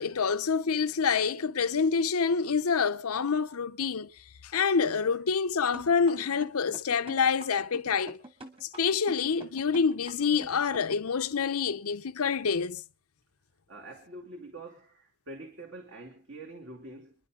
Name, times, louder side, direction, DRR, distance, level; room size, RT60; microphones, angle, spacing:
voice 1, 0.0-4.1 4.4-8.2 8.6-12.8, left 5 dB, 80° left, 0.7 m, -27 dB
sound 1, 5.7-11.1, right 1 dB, 25° right, 2.2 m, -46 dB
voice 2, 13.7-17.1, right 2 dB, 55° right, 2.8 m, -45 dB
28.0 x 11.0 x 3.7 m
head